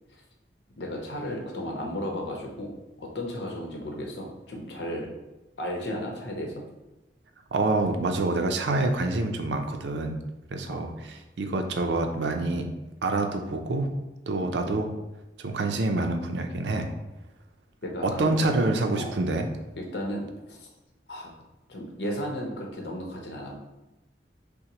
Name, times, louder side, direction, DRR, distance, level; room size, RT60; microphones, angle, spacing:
voice 1, 0.8-5.1 5.6-6.5 10.6-10.9 17.8-18.4 18.9-19.2 19.8-20.7 21.1-21.3 21.7-23.5, equal, 75° left, 0 dB, 0.8 m, -34 dB
voice 2, 7.5-10.2 10.5-12.8 13.0-14.0 14.3-14.9 15.4-16.9 18.0-19.5, right 2 dB, 85° right, 5 dB, 0.5 m, -27 dB
5.7 x 2.1 x 2.9 m, 1.0 s
head